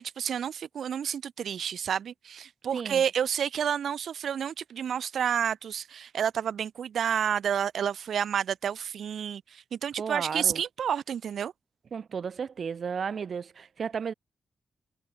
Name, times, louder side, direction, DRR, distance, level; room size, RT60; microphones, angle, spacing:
voice 1, 0.0-11.5, right 8 dB, 70° right, 2.2 m, -30 dB
voice 2, 2.7-3.0 10.0-10.6 11.9-14.1, right 6 dB, 50° right, 2.8 m, -33 dB
wide cardioid pair, 165°, 0 cm